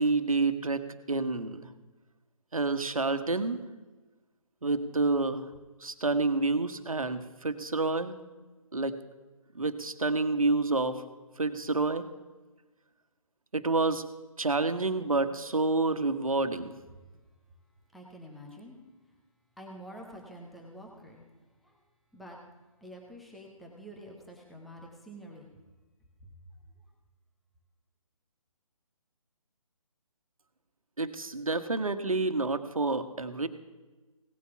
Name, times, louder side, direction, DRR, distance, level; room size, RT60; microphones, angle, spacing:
voice 1, 0.0-1.7 2.5-3.6 4.6-5.4 5.8-8.2 8.7-8.9 9.5-11.0 11.4-12.0 13.5-14.0 14.4-16.7 31.0-33.5, right 3 dB, 75° right, 10 dB, 1.3 m, -28 dB
voice 2, 17.9-18.8 19.6-21.8 22.1-22.4 22.8-25.5, equal, ahead, -1 dB, 0.4 m, -48 dB
17.0 x 8.3 x 6.8 m, 1.2 s
figure-of-eight pair, 145°, 18 cm